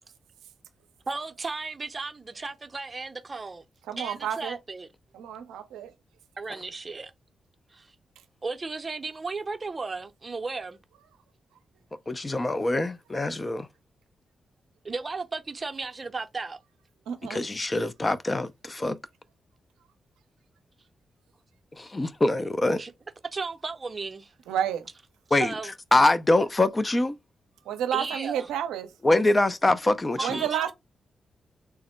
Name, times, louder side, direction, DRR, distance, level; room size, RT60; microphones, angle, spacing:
voice 1, 1.1-3.6 4.0-4.9 6.4-7.1 7.7-8.0 8.4-10.8 14.8-16.6 22.8-22.9 23.3-24.3 25.3-25.7 27.9-28.5 30.2-30.7, right 4 dB, 40° right, 0.6 m, -35 dB
voice 2, 3.9-4.6 5.1-5.9 17.1-17.4 24.5-24.9 27.7-28.9 30.2-30.7, right 9 dB, 90° right, 0.5 m, -30 dB
voice 3, 12.1-13.7 17.3-19.0 21.8-22.8 25.3-25.5 25.9-27.1 29.0-30.4, left 2 dB, 30° left, 0.5 m, -24 dB
3.4 x 2.1 x 4.2 m
supercardioid pair, 45°, 0 cm